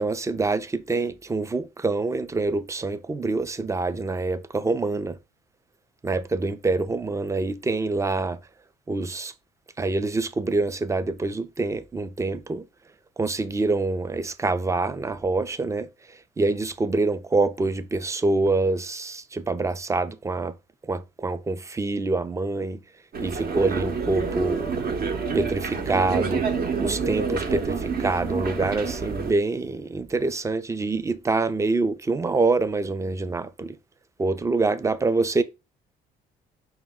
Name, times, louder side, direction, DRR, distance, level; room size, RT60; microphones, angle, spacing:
voice 1, 0.0-5.2 6.0-8.4 8.9-9.3 9.8-12.6 13.2-15.9 16.4-20.5 20.9-22.8 23.2-24.7 25.4-26.4 26.8-33.7 34.2-35.4, right 3 dB, 15° right, 0.4 m, -25 dB
sound 1, 23.1-29.3, right 5 dB, 50° right, 0.8 m, -28 dB
5.3 x 2.1 x 3.5 m
supercardioid pair, 75°, 20 cm